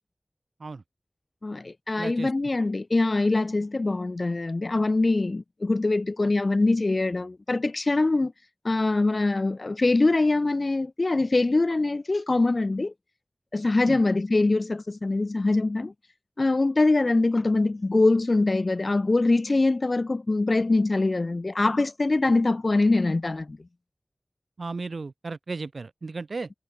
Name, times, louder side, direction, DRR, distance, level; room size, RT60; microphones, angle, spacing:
voice 1, 1.4-8.3 8.6-12.9 13.5-15.9 16.4-23.6, left 2 dB, 55° left, 0.5 m, -23 dB
voice 2, 2.0-2.3 6.2-6.3 13.8-14.0 24.6-26.5, right 3 dB, 85° right, 0.6 m, -35 dB
wide cardioid pair, 60°, 0 cm